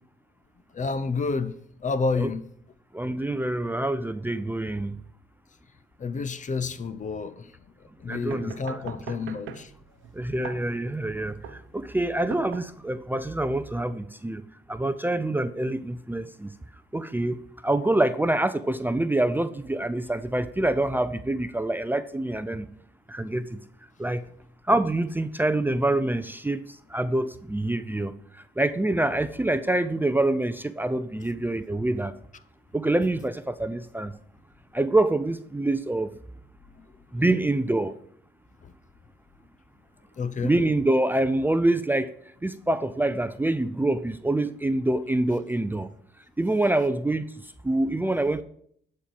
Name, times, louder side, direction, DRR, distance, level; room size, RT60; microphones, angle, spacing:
voice 1, 0.7-2.4 6.0-7.5 7.8-9.7 24.0-24.2 36.8-36.9 38.6-38.7 40.2-40.6, left 4 dB, 40° left, 0.8 m, -30 dB
voice 2, 2.9-5.0 8.1-8.9 10.1-16.5 16.9-22.7 23.1-23.6 24.0-24.3 24.7-32.1 32.7-34.1 34.7-36.2 37.1-37.9 40.4-42.1 42.4-45.9 46.4-48.4, right 2 dB, 10° right, 0.5 m, -26 dB
sound 1, 8.1-13.1, right 8 dB, 85° right, 1.0 m, -42 dB
12.0 x 4.4 x 7.7 m
cardioid pair, 90°, 20 cm